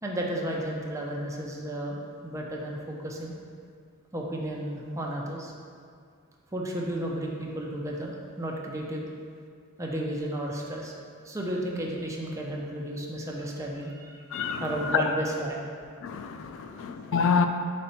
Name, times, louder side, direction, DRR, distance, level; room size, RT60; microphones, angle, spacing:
voice 1, 0.0-3.3 4.1-5.5 6.5-9.1 9.8-10.9 11.2-14.2 14.6-15.6 16.5-16.7, right 1 dB, 15° right, -2 dB, 0.6 m, -33 dB
voice 2, 14.3-15.1 16.0-17.5, left 5 dB, 60° left, 6 dB, 0.3 m, -27 dB
4.2 x 4.2 x 5.5 m, 2.2 s
head